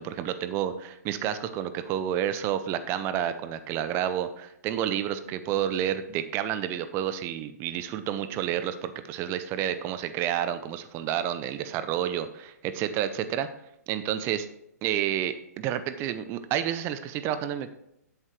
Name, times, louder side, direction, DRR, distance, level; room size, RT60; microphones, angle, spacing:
voice 1, 0.0-13.5 13.9-14.5 14.8-17.7, right 10 dB, 25° right, 11 dB, 0.5 m, -30 dB
8.0 x 7.4 x 3.1 m, 0.79 s
hypercardioid pair, 125°, 9 cm